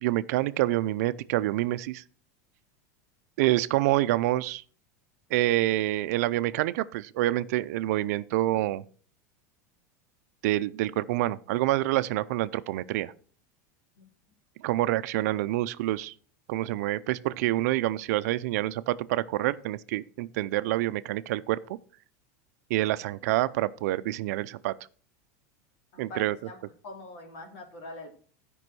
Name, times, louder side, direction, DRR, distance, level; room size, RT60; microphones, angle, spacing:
voice 1, 0.0-2.0 3.4-4.6 5.3-8.8 10.4-13.1 14.6-16.1 16.5-21.6 22.7-24.7 26.0-26.4, right 16 dB, 65° right, 0.5 m, -27 dB
voice 2, 25.9-26.6 26.8-28.1, left 2 dB, 50° left, 3.2 m, -43 dB
12.5 x 5.4 x 6.1 m
supercardioid pair, 165°, 9 cm